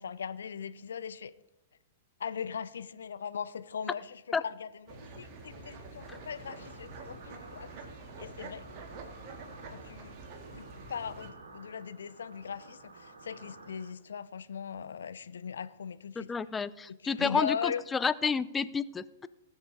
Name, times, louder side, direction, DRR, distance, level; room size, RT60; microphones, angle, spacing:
voice 1, 0.0-1.3 2.2-7.7 8.2-8.6 9.7-10.2 10.6-16.3 16.9-17.8, left 7 dB, 65° left, 0.6 m, -39 dB
sound 1, 4.9-11.3, right 3 dB, 35° right, 2.4 m, -47 dB
sound 2, 6.0-13.9, right 3 dB, 70° right, 2.4 m, -53 dB
voice 2, 16.3-19.3, left 5 dB, 15° left, 0.5 m, -30 dB
18.5 x 7.3 x 5.0 m
figure-of-eight pair, 105°, 0 cm